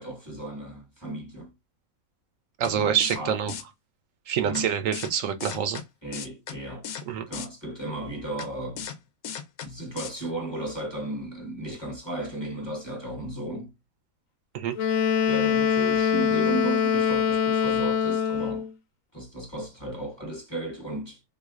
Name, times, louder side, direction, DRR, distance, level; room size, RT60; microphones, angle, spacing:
voice 1, 0.0-1.5 2.7-3.6 4.4-4.7 6.0-6.9 7.3-8.9 9.6-13.7 15.2-18.7 19.1-21.2, right 1 dB, 20° left, 1.0 m, -35 dB
sound 1, 2.6-2.7 3.0-3.2 3.5-3.6 4.6-4.7 4.9-5.1 5.4-5.8 6.1-6.6 6.8-7.0 7.3-7.5 8.4-8.5 8.8-9.0 9.2-9.7 10.0-10.1, left 7 dB, 90° left, 1.2 m, -35 dB
voice 2, 2.6-3.5 4.3-5.8 7.1-7.2 14.5-14.7, right 8 dB, 75° right, 0.9 m, -26 dB
Wind instrument woodwind instrument, 14.8-18.7, left 7 dB, 75° left, 1.0 m, -23 dB
3.6 x 3.1 x 2.3 m
omnidirectional pair, 1.5 m